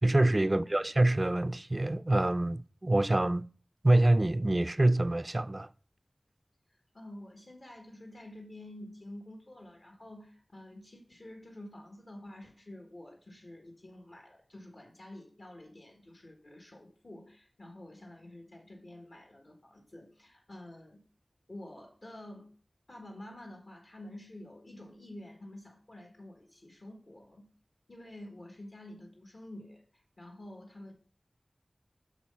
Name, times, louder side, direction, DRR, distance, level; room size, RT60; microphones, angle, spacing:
voice 1, 0.0-3.4 3.8-5.7, right 1 dB, 35° right, 0.3 m, -26 dB
voice 2, 6.9-21.0 21.5-22.5 22.9-27.5 27.9-30.9, left 1 dB, 70° left, 1.5 m, -49 dB
6.5 x 6.0 x 5.4 m
wide cardioid pair, 55°, 0 cm